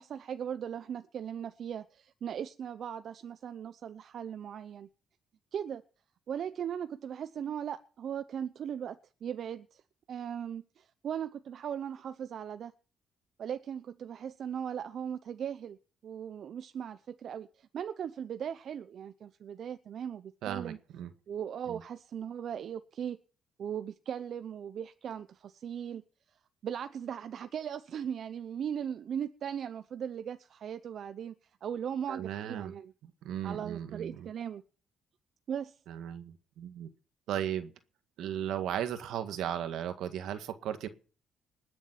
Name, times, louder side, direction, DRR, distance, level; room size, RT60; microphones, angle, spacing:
voice 1, 0.0-4.9 5.5-5.8 6.3-9.8 10.1-12.7 13.4-15.8 16.0-20.8 21.3-23.2 23.6-26.0 26.6-31.3 31.6-32.9 33.4-34.6 35.5-35.8, right 8 dB, 60° right, 0.8 m, -38 dB
voice 2, 20.4-21.1 21.7-21.8 32.1-32.7 33.0-34.3 35.9-36.9 37.3-37.7 38.2-40.9, right 10 dB, 85° right, 1.8 m, -36 dB
20.5 x 7.4 x 7.4 m
cardioid pair, 90°, 0 cm